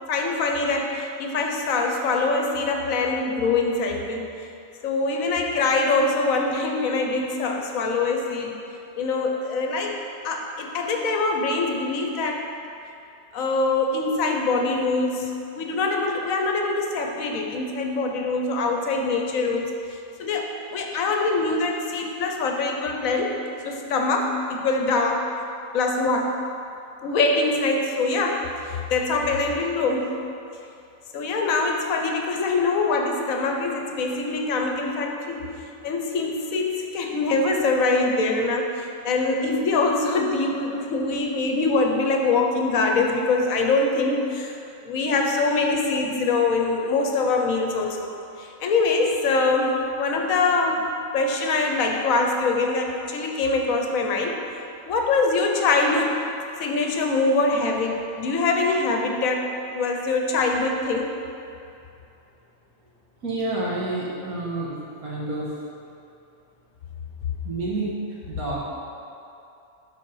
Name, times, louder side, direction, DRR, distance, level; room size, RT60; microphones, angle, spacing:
voice 1, 0.1-4.3 4.8-8.6 9.0-10.0 10.2-12.5 13.3-19.7 20.2-23.3 23.6-25.2 25.7-26.3 27.0-30.2 31.1-35.5 35.8-44.5 44.8-48.1 48.4-50.9 51.1-54.4 54.9-56.1 56.6-61.1, left 3 dB, 70° left, 2 dB, 1.1 m, -24 dB
voice 2, 63.2-64.7 65.0-65.5 67.4-68.6, right 2 dB, 85° right, -5 dB, 1.8 m, -29 dB
6.5 x 4.1 x 5.4 m, 2.7 s
omnidirectional pair, 1.5 m